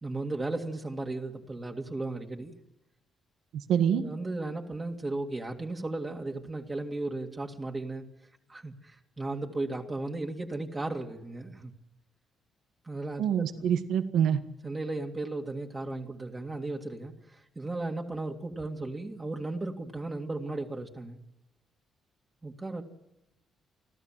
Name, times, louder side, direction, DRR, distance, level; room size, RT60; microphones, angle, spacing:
voice 1, 0.0-2.6 3.9-8.0 8.5-11.7 12.8-13.7 14.6-21.2 22.4-22.8, right 2 dB, 25° right, 1 dB, 2.1 m, -35 dB
voice 2, 3.5-4.1 13.2-14.4, right 8 dB, 80° right, 9 dB, 1.4 m, -26 dB
29.5 x 12.5 x 7.5 m, 0.94 s
cardioid pair, 90°, 0 cm